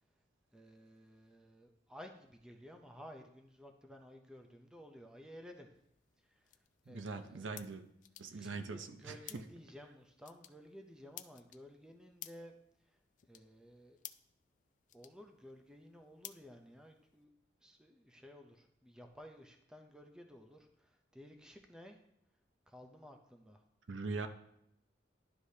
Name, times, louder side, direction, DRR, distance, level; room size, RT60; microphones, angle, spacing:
voice 1, 0.5-5.7 6.9-7.5 8.3-12.5 13.3-14.0 14.9-17.3 17.6-22.0 22.7-23.6, equal, 5° right, 3 dB, 0.6 m, -55 dB
sound 1, 5.7-17.2, left 13 dB, 40° left, 0.3 m, -57 dB
voice 2, 6.9-7.8 8.2-9.2 23.9-24.3, right 4 dB, 80° right, 8 dB, 0.6 m, -42 dB
12.0 x 4.8 x 2.8 m, 0.75 s
head